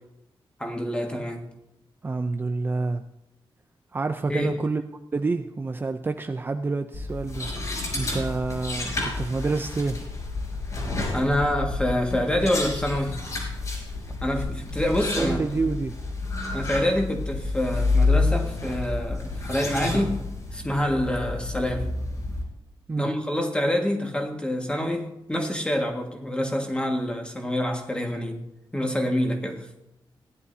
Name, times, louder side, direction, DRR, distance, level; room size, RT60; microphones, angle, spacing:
voice 1, 0.6-1.5 4.3-4.6 11.1-13.2 14.2-15.6 16.5-20.2 20.5-21.9 23.0-28.4 28.7-29.7, left 1 dB, 10° left, 1.7 m, -26 dB
voice 2, 2.0-3.0 3.9-4.8 5.1-10.0 15.1-15.9 22.9-23.1, right 3 dB, 25° right, 0.5 m, -28 dB
sound 1, 6.9-22.4, left 3 dB, 40° left, 5.0 m, -29 dB
17.0 x 11.0 x 2.7 m
wide cardioid pair, 155°, 9 cm